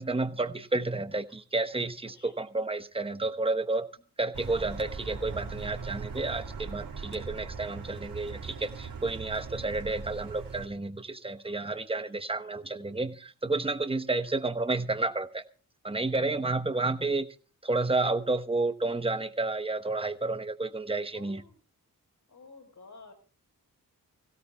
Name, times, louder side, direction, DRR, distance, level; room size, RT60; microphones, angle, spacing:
voice 1, 0.0-3.9 4.2-15.4 15.8-17.3 17.6-21.4, right 2 dB, 15° right, 1.0 m, -31 dB
voice 2, 3.2-3.5 11.9-12.9 21.1-21.6 22.3-23.1, left 3 dB, 60° left, 4.4 m, -55 dB
Car, 4.3-10.7, right 5 dB, 80° right, 3.4 m, -40 dB
25.5 x 16.5 x 2.3 m
wide cardioid pair, 115°, 34 cm